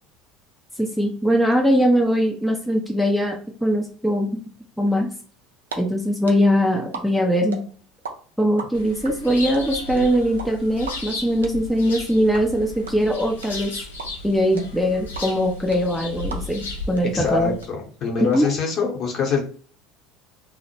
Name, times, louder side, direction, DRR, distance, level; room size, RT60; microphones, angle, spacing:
voice 1, 0.8-4.4 4.8-5.1 5.8-7.6 8.4-13.7 14.2-17.5 18.2-18.5, equal, ahead, 0 dB, 0.4 m, -21 dB
sound 1, 5.4-5.8 6.0-8.1 8.4-16.7 17.0-17.1 17.3-18.4, right 5 dB, 80° right, 0.4 m, -36 dB
sound 2, 8.7-17.7, left 2 dB, 80° left, 0.4 m, -35 dB
voice 2, 17.0-19.4, left 5 dB, 45° left, 0 dB, 0.8 m, -24 dB
2.1 x 2.0 x 2.9 m, 0.43 s
figure-of-eight pair, 70°, 0 cm